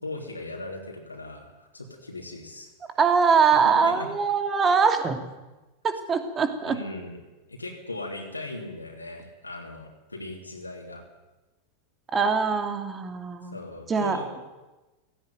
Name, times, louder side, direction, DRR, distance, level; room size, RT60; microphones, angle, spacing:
voice 1, 0.0-3.0 3.5-4.1 6.7-7.2 7.5-11.0 13.4-14.3, left 2 dB, 80° left, 0 dB, 3.3 m, -38 dB
voice 2, 3.0-5.2 5.8-6.8 12.1-13.6 13.9-14.2, right 5 dB, 20° right, 7 dB, 2.6 m, -22 dB
16.5 x 16.5 x 9.4 m, 1.1 s
figure-of-eight pair, 90°, 0 cm